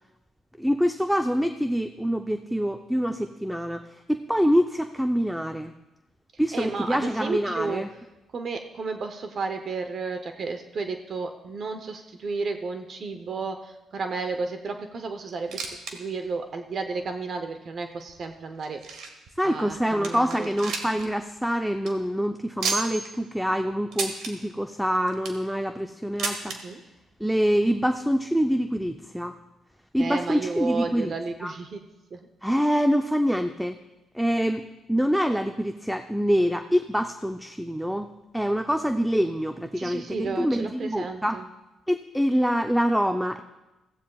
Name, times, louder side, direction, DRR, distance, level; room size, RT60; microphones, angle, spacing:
voice 1, 0.6-5.7 6.4-7.9 19.4-26.6 27.2-29.4 29.9-31.1 31.4-31.5 32.4-33.8 34.1-38.1 38.3-41.4 41.9-43.4, equal, ahead, 7 dB, 0.5 m, -25 dB
voice 2, 6.5-7.8 8.3-18.8 19.4-20.5 26.5-26.8 30.0-31.8 32.1-32.3 39.8-41.5, right 4 dB, 50° right, 6 dB, 0.8 m, -32 dB
sound 1, 15.3-16.0 16.2-16.3 17.0-17.1 17.8-19.3 19.7-19.8 20.0-21.1 21.4-21.5 21.7-21.9 22.6-23.1 23.9-24.3 24.9-25.5 26.2-26.6 27.5-27.6 27.8-27.9 28.8-28.9, right 4 dB, 80° right, 1.6 m, -32 dB
16.0 x 15.0 x 2.3 m, 1.0 s
cardioid pair, 90°, 0 cm